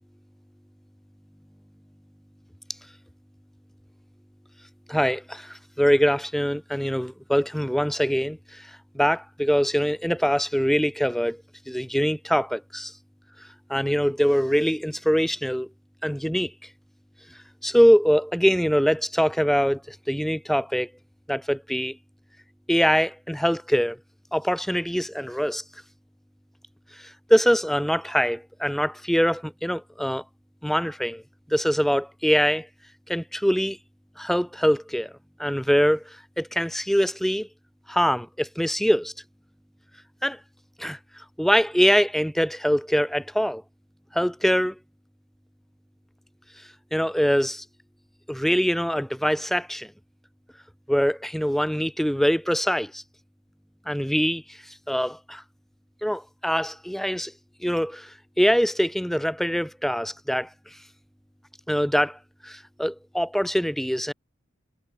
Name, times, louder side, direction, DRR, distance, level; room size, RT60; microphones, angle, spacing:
voice 1, 4.9-8.4 8.9-11.4 11.7-12.9 13.7-15.7 16.0-16.5 17.6-20.9 21.3-22.0 22.7-24.0 24.3-25.6 27.3-30.2 30.6-31.2 31.5-32.7 33.1-33.8 34.2-35.1 35.4-36.0 36.4-37.5 37.9-39.1 40.2-40.4 40.8-41.0 41.4-43.6 44.1-44.7 46.9-47.6 48.3-49.9 50.9-53.0 53.9-54.4 54.9-55.4 56.0-57.3 57.6-58.1 58.4-60.5 61.7-62.2 62.4-64.1, equal, ahead, 3.8 m, -23 dB
head